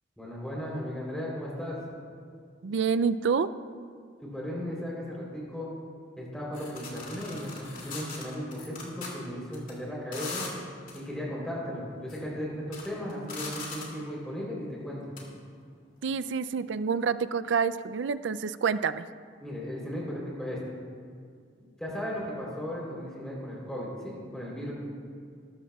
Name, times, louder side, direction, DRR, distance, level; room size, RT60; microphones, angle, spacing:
voice 1, 0.2-1.8 4.2-5.7 6.2-10.4 10.9-15.1 19.4-20.6 21.8-24.7, equal, 5° left, -5 dB, 3.4 m, -36 dB
voice 2, 2.6-3.5 16.0-19.0, right 6 dB, 75° right, 14 dB, 0.4 m, -27 dB
sound 1, 6.5-9.1 9.5-9.7 10.1-10.5 10.9-11.0 11.9-12.2 12.6-14.0 15.2-15.3, left 4 dB, 45° left, 2.5 m, -39 dB
19.5 x 13.0 x 2.3 m, 2.2 s
head